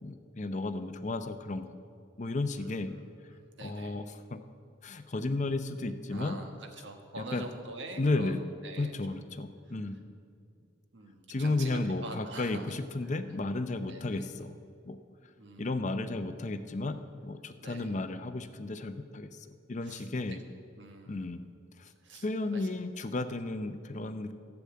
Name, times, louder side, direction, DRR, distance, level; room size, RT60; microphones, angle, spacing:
voice 1, 0.0-1.7 2.2-3.0 3.6-4.0 4.3-4.4 4.8-6.4 7.2-7.4 8.0-8.4 8.8-10.0 11.3-14.6 14.8-15.0 15.6-20.4 21.1-21.4 21.8-21.9 22.2-24.3, left 2 dB, 40° left, 9 dB, 0.6 m, -33 dB
voice 2, 2.6-3.0 3.3-4.0 6.1-9.2 9.6-9.8 10.5-10.7 10.9-12.8 13.0-13.1 13.9-14.3 15.4-16.1 17.6-17.9 19.8-20.4 20.8-21.5 22.0-22.3 22.5-22.7, right 2 dB, 60° right, 4 dB, 1.4 m, -46 dB
12.0 x 7.0 x 8.5 m, 2.4 s
head